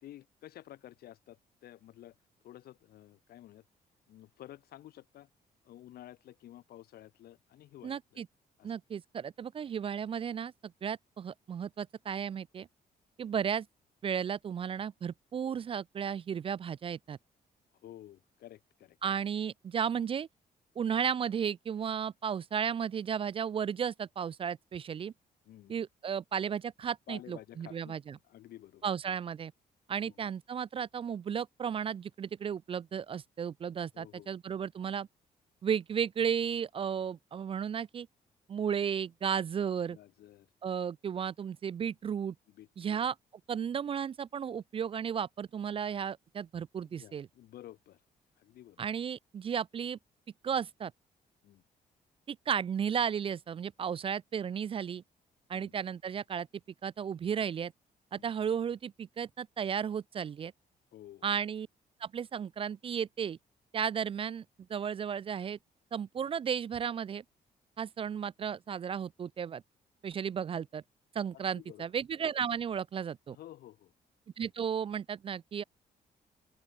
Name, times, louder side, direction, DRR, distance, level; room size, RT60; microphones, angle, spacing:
voice 1, 0.0-2.2 2.4-3.6 4.1-5.3 5.6-8.2 8.6-8.7 17.8-19.0 25.4-25.8 27.1-29.1 30.0-30.3 33.9-34.3 39.9-40.5 42.5-43.1 46.8-48.0 48.4-48.8 51.4-51.6 55.5-55.8 58.1-58.3 60.9-61.3 71.3-71.8 73.3-73.9, left 13 dB, 85° left, 4.5 m, -52 dB
voice 2, 7.8-8.3 8.6-10.5 10.8-12.7 13.2-13.7 14.0-17.2 19.0-20.3 20.8-25.1 25.7-28.2 28.8-29.5 29.9-35.1 35.6-38.1 38.5-40.0 40.6-42.3 42.8-43.1 43.5-47.3 48.8-50.0 50.4-50.9 52.3-55.0 55.5-56.5 56.8-57.7 58.1-60.5 61.2-61.7 62.0-63.4 63.7-64.4 64.7-65.6 65.9-67.2 67.8-69.6 70.0-70.8 71.1-73.4 74.4-75.6, right 7 dB, 35° right, 0.4 m, -34 dB
open air
cardioid pair, 125°, 16 cm